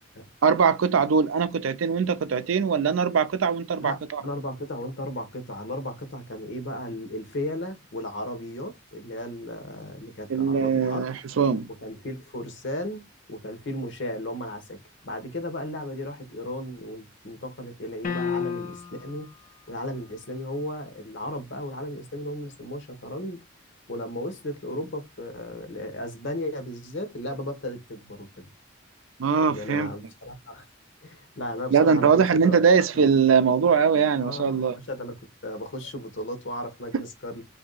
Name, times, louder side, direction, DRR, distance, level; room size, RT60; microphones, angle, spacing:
voice 1, 0.4-4.2 10.3-11.7 29.2-29.9 31.7-34.8, right 6 dB, 90° right, 0.4 m, -21 dB
voice 2, 3.8-11.0 11.7-19.3 19.7-23.4 23.9-28.5 29.4-30.6 31.0-32.6 32.9-33.0 33.3-33.4 34.2-37.4, left 1 dB, 65° left, 1.0 m, -35 dB
sound 1, 18.0-19.1, left 6 dB, 40° left, 0.4 m, -30 dB
2.8 x 2.7 x 3.8 m
head